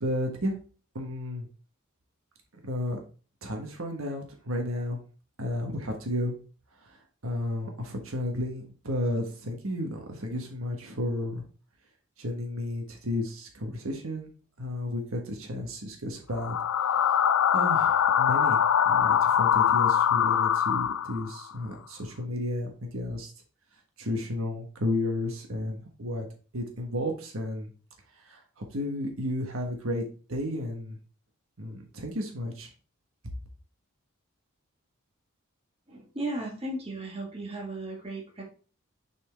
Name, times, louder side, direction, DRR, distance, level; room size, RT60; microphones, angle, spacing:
voice 1, 0.0-0.5 0.9-1.5 2.6-3.0 3.4-5.0 5.4-6.3 7.2-11.4 12.2-14.3 14.6-16.5 17.5-18.6 18.8-23.3 24.0-26.3 26.5-27.7 28.3-31.0 31.6-32.7, left 1 dB, 75° right, 3 dB, 1.4 m, -32 dB
sound 1, 16.3-21.4, left 9 dB, 70° left, 0.4 m, -23 dB
voice 2, 35.9-38.4, right 2 dB, 25° right, -1 dB, 1.5 m, -35 dB
7.0 x 4.3 x 3.4 m, 0.38 s
head